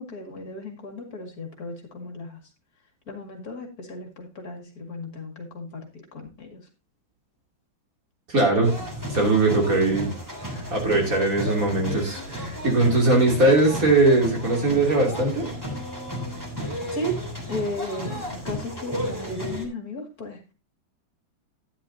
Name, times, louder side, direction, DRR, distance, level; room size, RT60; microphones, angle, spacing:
voice 1, 0.0-2.4 3.1-6.6 16.9-17.2 17.5-20.5, left 1 dB, 50° left, 2 dB, 2.6 m, -35 dB
voice 2, 8.3-8.7 9.1-10.1 10.4-15.5, right 2 dB, 45° right, 0 dB, 3.4 m, -20 dB
sound 1, 8.6-19.6, equal, 10° right, 3.1 m, -33 dB
12.5 x 10.0 x 2.7 m, 0.29 s
omnidirectional pair, 2.1 m